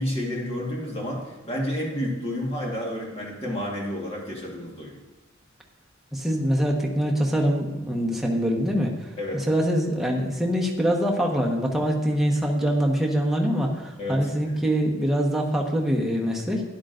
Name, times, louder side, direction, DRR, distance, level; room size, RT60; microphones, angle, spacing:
voice 1, 0.0-5.0 9.2-9.5 14.0-14.6, left 1 dB, 30° left, -2 dB, 1.6 m, -30 dB
voice 2, 6.1-8.9 9.5-16.6, equal, ahead, -1 dB, 1.1 m, -24 dB
12.0 x 10.5 x 2.6 m, 1.1 s
head